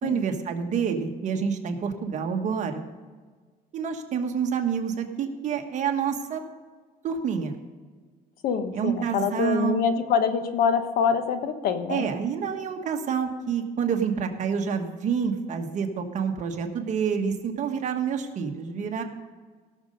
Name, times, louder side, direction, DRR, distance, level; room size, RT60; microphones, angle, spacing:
voice 1, 0.0-2.8 3.7-6.4 7.0-7.6 8.7-9.8 11.9-19.0, right 7 dB, 50° right, 4 dB, 1.4 m, -28 dB
voice 2, 8.4-12.0, left 6 dB, 70° left, 9 dB, 1.2 m, -25 dB
17.5 x 6.7 x 5.2 m, 1.5 s
cardioid pair, 135°, 16 cm